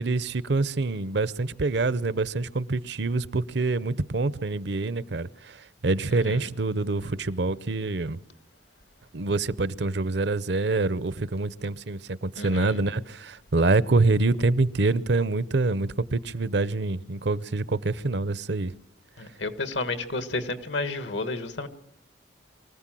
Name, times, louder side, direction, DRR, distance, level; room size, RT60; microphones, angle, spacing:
voice 1, 0.0-8.2 9.1-18.7, right 3 dB, 70° right, 0.7 m, -26 dB
voice 2, 12.4-12.8 19.2-21.7, left 3 dB, 80° left, 1.6 m, -31 dB
24.0 x 15.0 x 7.6 m
head